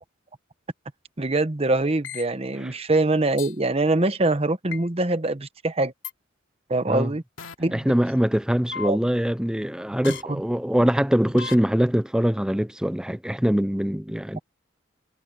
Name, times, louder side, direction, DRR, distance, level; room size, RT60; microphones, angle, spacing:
voice 1, 1.2-5.9 6.7-7.2 7.6-7.9 8.8-9.0 10.3-10.4, right 2 dB, 30° right, 1.0 m, -23 dB
sound 1, 2.0-2.2 3.4-3.5 4.7-4.8 6.0-6.1 7.4-7.5 8.7-8.9 10.0-10.2 11.4-11.5, left 7 dB, 80° left, 2.9 m, -34 dB
voice 2, 7.7-14.4, equal, 5° right, 0.5 m, -23 dB
head